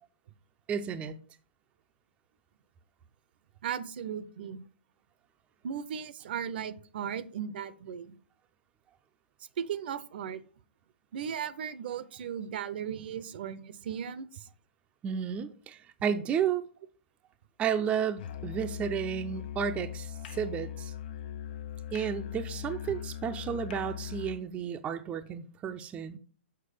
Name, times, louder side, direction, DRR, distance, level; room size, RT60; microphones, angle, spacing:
voice 1, 0.7-1.2 15.0-16.6 17.6-20.9 21.9-26.2, right 7 dB, 20° right, 0.5 m, -32 dB
voice 2, 3.6-4.6 5.6-8.1 9.6-10.4 11.1-14.5, right 8 dB, 60° right, 0.7 m, -36 dB
Musical instrument, 18.2-24.5, left 10 dB, 55° left, 0.5 m, -40 dB
6.7 x 4.7 x 4.9 m
hypercardioid pair, 130°, 6 cm